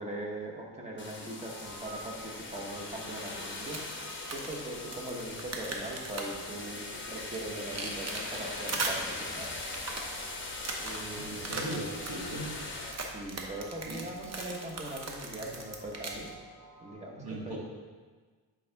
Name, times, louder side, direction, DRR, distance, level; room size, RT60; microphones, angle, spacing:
voice 1, 0.0-3.8 4.3-9.5 10.8-11.5 12.9-16.4 16.8-17.6, right 1 dB, 15° right, -2 dB, 1.1 m, -41 dB
sound 1, 1.0-12.9, left 3 dB, 30° left, 0.9 m, -41 dB
sound 2, 1.2-16.9, right 1 dB, 85° right, 2.1 m, -53 dB
sound 3, 1.6-16.3, right 3 dB, 40° right, 0.9 m, -41 dB
voice 2, 11.2-12.6 13.8-14.0 17.1-17.6, right 1 dB, 65° right, -4 dB, 1.9 m, -38 dB
8.4 x 5.1 x 3.5 m, 1.4 s
wide cardioid pair, 150°, 40 cm